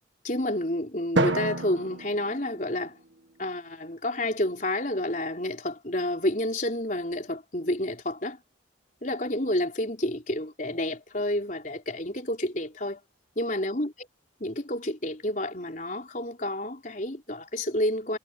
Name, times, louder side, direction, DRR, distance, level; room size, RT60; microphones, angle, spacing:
voice 1, 0.2-3.0 3.4-8.4 9.0-13.0 13.4-13.9 14.4-18.2, left 1 dB, 40° left, 4.3 m, -29 dB
Drum, 1.2-3.4, right 2 dB, 70° right, 1.9 m, -30 dB
head